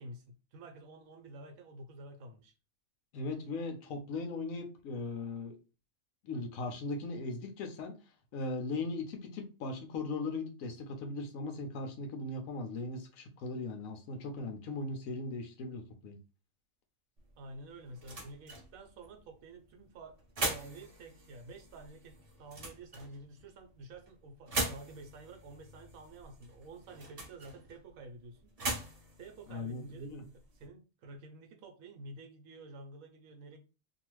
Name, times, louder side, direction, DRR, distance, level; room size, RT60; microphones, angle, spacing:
voice 1, 0.0-2.5 17.4-20.2 20.5-28.5 29.2-33.6, right 2 dB, 75° right, 1.0 m, -50 dB
voice 2, 3.1-5.5 6.2-7.9 8.3-16.2 29.5-30.3, left 3 dB, 75° left, 1.0 m, -38 dB
sound 1, 17.2-30.7, right 2 dB, 35° right, 0.7 m, -42 dB
2.7 x 2.4 x 3.0 m
omnidirectional pair, 1.5 m